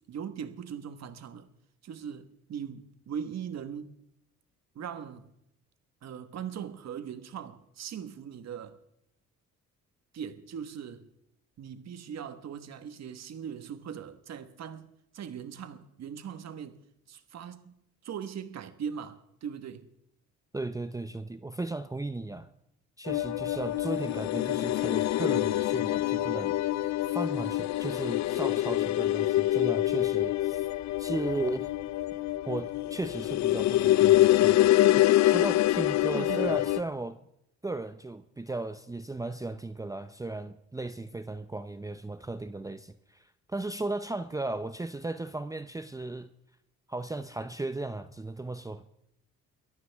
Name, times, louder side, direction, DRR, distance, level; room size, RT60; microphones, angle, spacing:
voice 1, 0.1-1.5 1.8-3.9 4.7-5.3 6.0-8.8 10.1-11.1 11.6-14.9 15.1-16.8 17.1-19.9 36.1-36.6, right 8 dB, 60° right, 1.5 m, -40 dB
voice 2, 20.5-22.5 23.0-26.6 27.0-30.7 31.0-31.7 32.5-34.7 35.0-37.2 37.6-46.3 46.9-48.8, right 2 dB, 10° right, 0.6 m, -36 dB
sound 1, 23.1-36.8, left 15 dB, 65° left, 0.5 m, -25 dB
23.0 x 14.0 x 3.5 m
cardioid pair, 90°, 30 cm